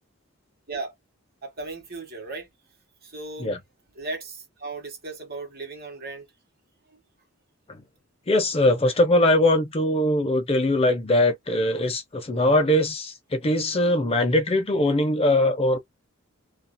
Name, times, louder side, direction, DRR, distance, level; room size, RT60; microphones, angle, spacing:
voice 1, 1.4-2.5 3.0-3.5 3.9-6.3 6.9-7.0, right 3 dB, 50° right, 1.3 m, -36 dB
voice 2, 8.3-15.8, left 1 dB, 30° left, 0.5 m, -21 dB
2.7 x 2.3 x 2.2 m
head